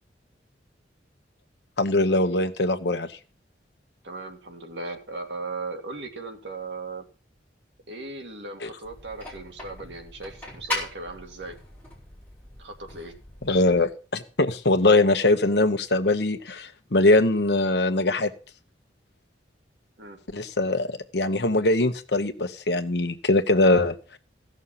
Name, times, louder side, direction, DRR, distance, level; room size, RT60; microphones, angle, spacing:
voice 1, 1.8-3.1 8.6-8.7 13.4-18.3 20.3-24.2, left 2 dB, 65° left, 8 dB, 1.1 m, -22 dB
voice 2, 4.0-7.0 7.9-11.6 12.6-13.1 20.0-20.2, right 3 dB, 75° right, 3 dB, 2.2 m, -37 dB
sound 1, 8.8-13.8, left 2 dB, 10° left, 4.1 m, -38 dB
15.5 x 6.5 x 5.7 m, 0.37 s
head